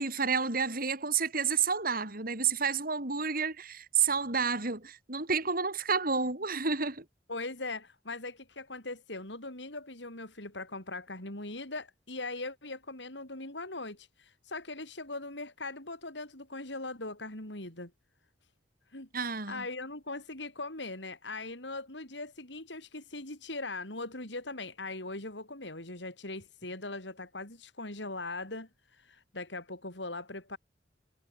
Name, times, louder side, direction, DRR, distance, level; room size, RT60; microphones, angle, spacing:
voice 1, 0.0-7.0 19.1-19.7, right 5 dB, 55° right, 5.6 m, -30 dB
voice 2, 7.3-17.9 18.9-19.1 19.5-30.6, left 2 dB, 85° left, 7.6 m, -40 dB
head